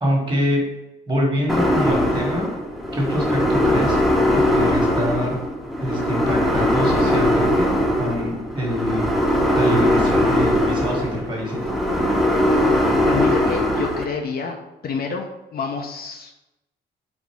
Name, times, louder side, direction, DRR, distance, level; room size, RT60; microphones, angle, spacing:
voice 1, 0.0-0.6 1.1-2.5 2.9-4.0 4.3-5.4 5.8-7.7 8.0-9.1 9.5-11.7, equal, 20° right, -2 dB, 1.5 m, -25 dB
sound 1, 1.5-14.0, left 1 dB, ahead, 0.6 m, -20 dB
voice 2, 13.1-14.6 14.8-16.3, left 5 dB, 50° left, 3 dB, 0.6 m, -28 dB
4.1 x 2.6 x 4.5 m, 0.94 s
cardioid pair, 90°, 20 cm